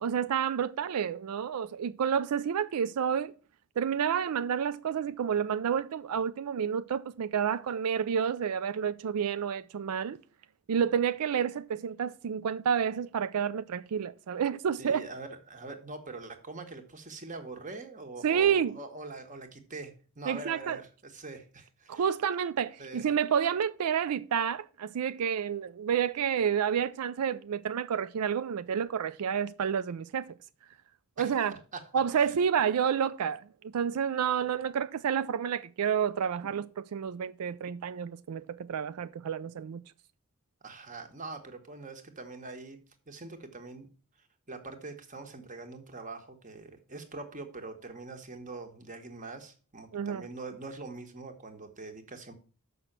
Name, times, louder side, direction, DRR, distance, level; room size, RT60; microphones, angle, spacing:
voice 1, 0.0-3.3 3.8-10.2 10.7-15.1 18.2-18.7 20.3-20.8 21.9-30.3 31.2-31.6 31.9-39.8 49.9-50.3, right 7 dB, 90° right, 0.4 m, -29 dB
voice 2, 14.8-22.1 22.8-23.1 31.2-31.4 31.7-32.4 40.6-42.8 43.1-43.9 44.5-52.3, right 3 dB, 35° right, 1.4 m, -43 dB
6.8 x 6.0 x 7.4 m
head